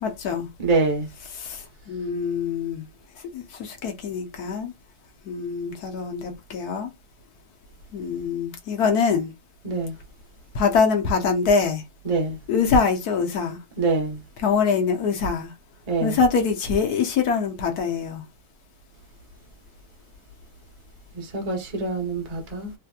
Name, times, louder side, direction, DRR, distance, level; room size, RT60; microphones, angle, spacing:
voice 1, 0.0-0.5 1.3-2.9 3.3-4.7 5.2-6.9 7.9-9.3 10.5-11.8 12.5-13.6 14.4-15.5 16.0-18.2, left 5 dB, 60° left, 1.0 m, -24 dB
voice 2, 0.6-1.1 9.6-9.9 12.0-12.4 13.8-14.2 15.9-16.2 21.1-22.7, right 3 dB, 45° right, 0.5 m, -25 dB
3.3 x 3.1 x 2.3 m
omnidirectional pair, 2.3 m